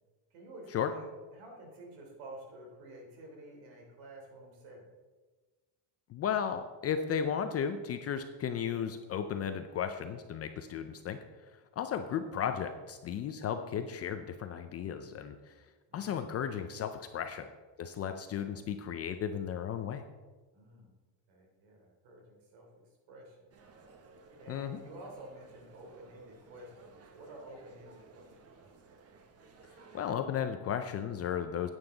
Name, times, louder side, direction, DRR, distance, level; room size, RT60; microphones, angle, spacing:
voice 1, 0.3-4.9 11.9-12.1 15.9-16.2 20.5-20.9 21.3-22.7 23.1-23.5 24.4-28.3, right 1 dB, 70° right, 0 dB, 3.5 m, -51 dB
voice 2, 6.1-15.7 15.9-17.5 17.8-20.0 24.5-24.8 29.9-31.7, left 8 dB, 35° left, 8 dB, 0.4 m, -35 dB
sound 1, 23.5-30.2, right 3 dB, 30° right, 0.9 m, -57 dB
9.5 x 8.9 x 3.9 m, 1.3 s
cardioid pair, 155°, 50 cm